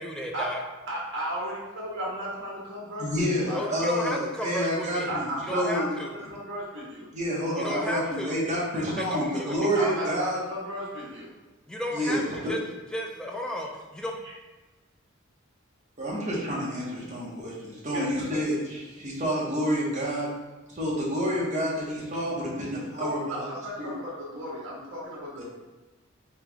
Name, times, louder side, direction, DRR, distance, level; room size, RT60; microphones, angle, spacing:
voice 1, 0.0-0.6 3.5-5.1 5.4-6.1 7.6-8.4 8.8-10.1 11.7-12.6 12.9-14.1, left 1 dB, 5° left, 0 dB, 0.4 m, -33 dB
voice 2, 0.9-3.8 5.1-7.1 9.7-11.3 14.2-14.3 17.9-18.4 23.0-25.4, equal, 60° right, -5 dB, 1.4 m, -35 dB
voice 3, 3.0-5.9 7.1-10.4 11.9-12.5 16.0-20.3 20.7-23.5 23.8-23.9 25.4-25.5, equal, 35° right, -5 dB, 1.1 m, -29 dB
3.3 x 3.0 x 3.5 m, 1.2 s
head